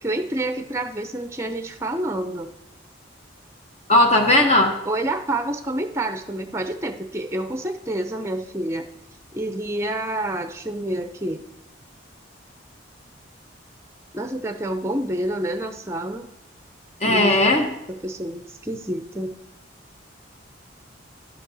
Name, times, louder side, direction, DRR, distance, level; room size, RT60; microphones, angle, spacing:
voice 1, 0.0-2.5 4.9-8.9 9.3-11.4 14.1-16.3 17.0-17.3 17.9-19.3, right 1 dB, 15° right, 7 dB, 0.6 m, -28 dB
voice 2, 3.9-4.7 17.0-17.7, left 1 dB, 35° left, 3 dB, 0.9 m, -17 dB
11.0 x 8.4 x 4.0 m, 0.85 s
head